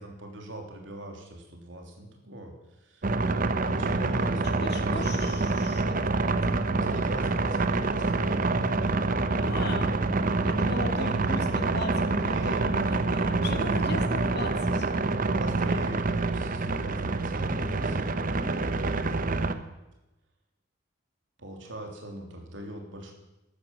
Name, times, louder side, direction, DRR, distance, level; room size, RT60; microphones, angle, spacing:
voice 1, 0.0-3.2 3.7-4.7 5.0-5.1 6.9-8.7 12.2-12.7 14.6-14.8 15.4-19.5 21.4-23.1, right 1 dB, 70° right, 3 dB, 3.2 m, -41 dB
sound 1, 3.0-19.5, right 3 dB, 45° right, 0.8 m, -27 dB
voice 2, 4.4-6.4 9.4-9.9 10.4-14.8 17.6-18.6, left 2 dB, 60° left, 5 dB, 2.4 m, -38 dB
13.5 x 11.5 x 7.6 m, 0.98 s
head